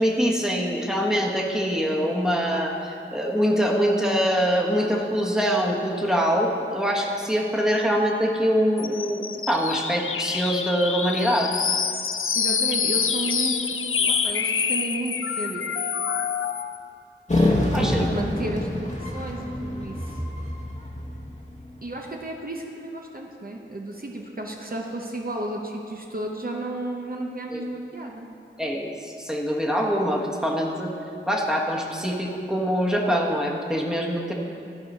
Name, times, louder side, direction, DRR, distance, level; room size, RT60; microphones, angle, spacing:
voice 1, 0.0-11.5 17.7-18.1 27.5-27.6 28.6-30.9 31.3-34.3, equal, 5° right, -1 dB, 1.2 m, -24 dB
sound 1, 8.8-16.8, left 6 dB, 85° left, 0.4 m, -26 dB
voice 2, 12.3-15.9 17.8-20.2 21.8-28.3, right 1 dB, 45° right, 0 dB, 0.8 m, -33 dB
sound 2, 17.3-21.8, left 1 dB, 35° left, 1.1 m, -26 dB
13.0 x 4.8 x 5.4 m, 2.6 s
wide cardioid pair, 50°, 21 cm